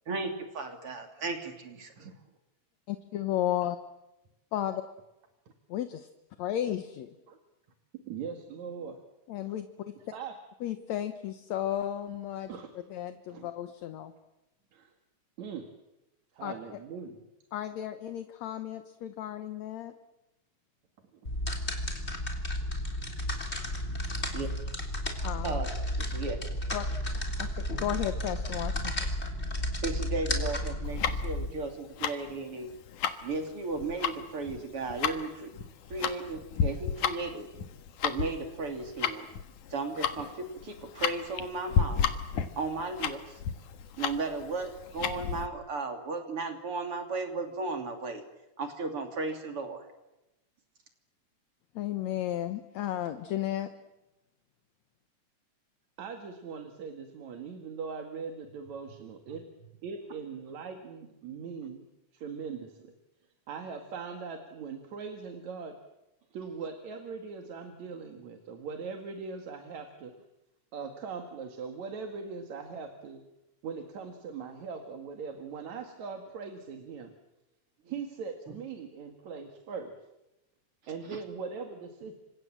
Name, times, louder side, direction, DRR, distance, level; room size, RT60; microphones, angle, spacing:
voice 1, 0.1-1.9 24.3-24.5 25.4-25.7 26.1-26.4 29.8-32.7 33.2-35.5 35.9-37.5 38.0-39.3 39.7-42.1 42.6-43.4 44.0-48.2 48.6-49.8 81.1-81.2, right 3 dB, 45° right, 5 dB, 3.7 m, -35 dB
voice 2, 2.9-3.8 4.5-4.8 5.7-6.0 6.4-7.1 9.3-9.7 10.6-12.5 12.9-14.1 16.4-16.5 17.5-19.9 25.2-25.6 26.7-26.9 27.4-29.1 51.8-53.7, left 12 dB, 70° left, 9 dB, 2.3 m, -33 dB
voice 3, 8.0-9.0 10.1-10.4 12.5-12.7 13.3-13.5 14.7-14.9 15.4-15.6 16.3-17.2 56.0-59.5 59.8-61.9 62.1-62.9 63.5-65.8 66.3-70.1 70.7-73.2 73.6-77.1 77.9-79.9 80.9-82.1, right 5 dB, 70° right, 5 dB, 3.2 m, -40 dB
sound 1, 21.2-31.5, left 1 dB, 20° left, 3.5 m, -33 dB
Tick-tock, 30.8-45.5, left 7 dB, 90° left, 3.0 m, -33 dB
29.0 x 25.5 x 7.6 m, 0.94 s
omnidirectional pair, 3.4 m